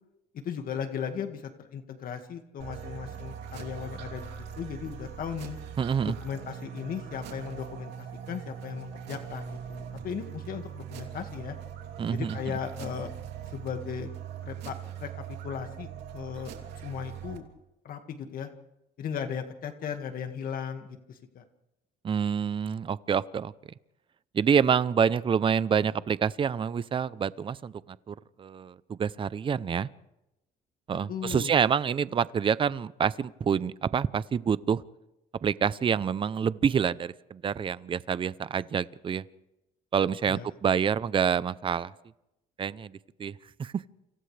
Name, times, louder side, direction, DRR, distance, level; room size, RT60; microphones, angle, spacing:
voice 1, 0.3-4.3 4.6-5.6 6.1-11.6 12.1-13.1 13.5-14.1 14.4-16.5 16.8-17.4 17.8-18.5 19.0-21.4 31.1-31.6 40.3-40.5, left 7 dB, 55° left, 5 dB, 2.0 m, -37 dB
sound 1, 2.6-17.4, right 9 dB, 80° right, 3.1 m, -41 dB
voice 2, 5.8-6.1 12.0-12.4 22.0-23.5 24.3-27.7 28.1-29.9 30.9-34.8 35.4-39.2 39.9-41.9 42.6-42.9 43.2-43.3 43.6-43.8, right 7 dB, 30° right, 17 dB, 0.6 m, -27 dB
29.0 x 26.5 x 3.4 m, 0.91 s
cardioid pair, 110°, 17 cm